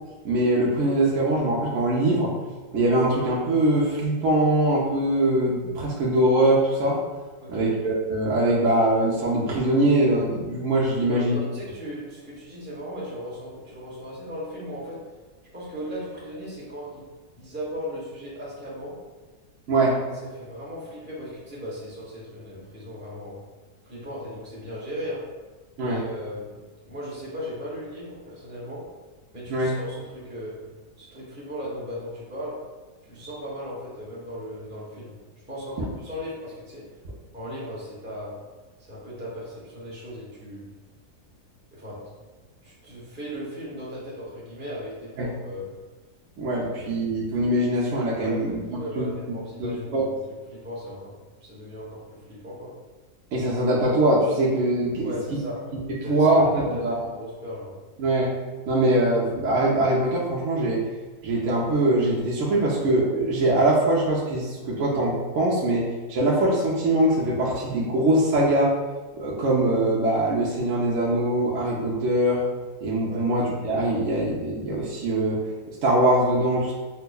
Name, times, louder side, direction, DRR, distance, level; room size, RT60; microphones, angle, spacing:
voice 1, 0.2-2.3 2.7-7.0 7.5-11.4 19.7-20.0 25.8-26.0 29.5-29.7 35.8-35.9 45.2-45.3 46.4-48.6 48.9-49.1 49.6-50.1 53.3-55.1 56.1-57.0 58.0-58.3 58.7-60.8 61.2-68.7 69.2-72.4 72.8-75.4 75.8-76.7, right 1 dB, 65° right, -5 dB, 0.8 m, -22 dB
voice 2, 7.4-7.8 11.0-15.0 15.5-17.0 17.3-19.0 20.2-23.4 23.8-25.2 25.8-28.8 29.3-30.6 31.0-32.6 33.0-35.2 35.5-36.8 37.3-38.3 38.8-40.7 41.7-42.1 42.6-45.7 46.6-47.2 48.2-50.1 50.5-51.1 51.4-52.7 55.0-55.6 56.0-57.7 73.1-73.3, equal, 10° right, -7 dB, 0.7 m, -37 dB
5.4 x 2.0 x 2.2 m, 1.3 s
omnidirectional pair, 1.6 m